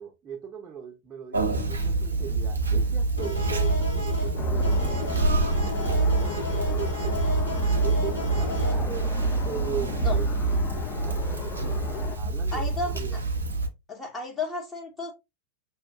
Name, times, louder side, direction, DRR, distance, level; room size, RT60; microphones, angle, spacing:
voice 1, 0.0-7.2 7.8-9.2 9.5-11.8 12.2-13.2, right 7 dB, 20° right, 0.7 m, -39 dB
Conversation, 1.3-13.7, right 3 dB, 75° right, 0.6 m, -26 dB
sound 1, 3.2-8.8, left 2 dB, 80° left, 1.3 m, -32 dB
sound 2, 4.4-12.2, left 7 dB, 35° left, 0.5 m, -37 dB
voice 2, 12.5-13.0 13.9-15.1, left 3 dB, 15° left, 0.9 m, -32 dB
5.7 x 2.5 x 2.2 m
figure-of-eight pair, 90°, 0 cm